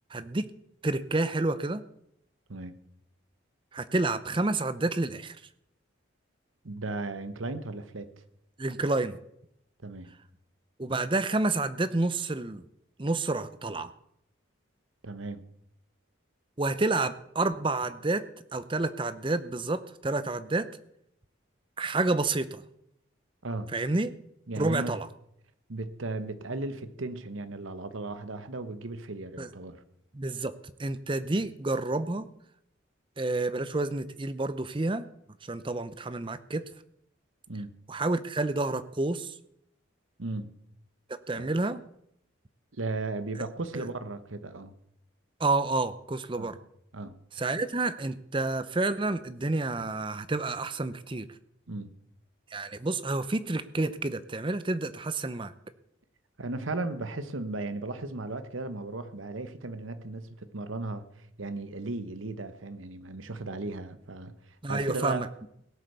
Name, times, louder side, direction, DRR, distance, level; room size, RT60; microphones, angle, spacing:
voice 1, 0.1-0.5 0.8-1.8 3.7-5.4 8.6-9.2 10.8-12.6 13.0-13.9 16.6-18.2 18.5-20.7 21.8-22.6 23.7-24.2 24.6-25.1 29.4-29.5 30.1-30.5 30.8-32.3 33.2-35.1 35.4-36.7 37.9-39.4 41.3-41.8 43.7-43.8 45.4-46.6 47.4-51.3 52.5-55.5 64.6-65.3, right 2 dB, 25° right, 14 dB, 0.6 m, -29 dB
voice 2, 6.6-8.1 9.8-10.1 15.0-15.4 23.4-23.7 24.5-25.0 25.7-29.8 31.3-31.4 37.5-37.7 40.2-40.5 41.3-41.5 42.7-44.7 46.3-46.5 46.9-47.2 51.7-51.9 56.4-65.2, right 2 dB, 80° right, 12 dB, 1.1 m, -36 dB
17.5 x 8.0 x 6.8 m, 0.75 s
head